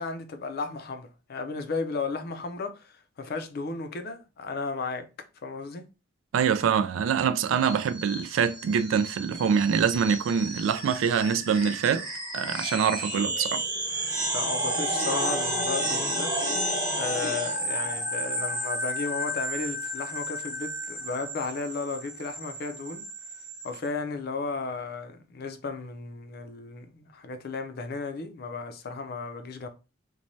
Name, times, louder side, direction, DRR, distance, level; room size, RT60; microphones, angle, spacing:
voice 1, 0.0-5.1 5.4-5.9 14.3-16.3 17.0-23.1 23.6-29.7, left 4 dB, 50° left, 0.4 m, -34 dB
voice 2, 6.3-12.1 12.3-13.6, right 7 dB, 80° right, 0.3 m, -25 dB
sound 1, 7.5-23.8, right 1 dB, 20° right, 0.8 m, -32 dB
3.0 x 2.2 x 2.6 m
head